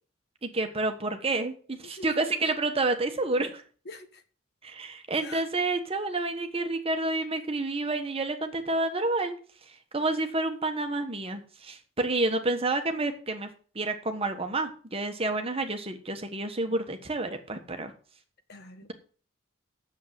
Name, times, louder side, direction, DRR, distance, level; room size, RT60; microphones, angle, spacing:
voice 1, 0.4-3.6 4.6-9.4 9.9-13.5 13.7-17.9, right 2 dB, 25° right, 6 dB, 1.3 m, -29 dB
voice 2, 3.9-4.2 5.2-5.4 18.5-18.9, left 3 dB, 50° left, 8 dB, 1.3 m, -44 dB
8.4 x 7.3 x 8.0 m, 0.41 s
head